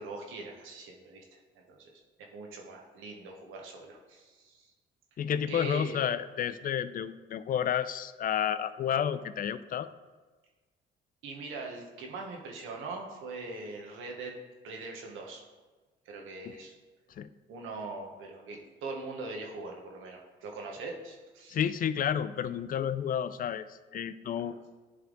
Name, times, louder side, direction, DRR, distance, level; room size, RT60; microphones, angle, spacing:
voice 1, 0.0-4.7 5.5-6.0 11.2-14.3 14.6-15.4 16.1-16.7 17.5-21.6 24.4-24.6, right 3 dB, 90° right, 1 dB, 1.2 m, -42 dB
voice 2, 5.2-9.9 16.5-16.6 17.2-17.3 21.5-24.5, left 9 dB, 45° left, 13 dB, 0.4 m, -31 dB
10.0 x 3.5 x 3.8 m, 1.3 s
cardioid pair, 90°, 20 cm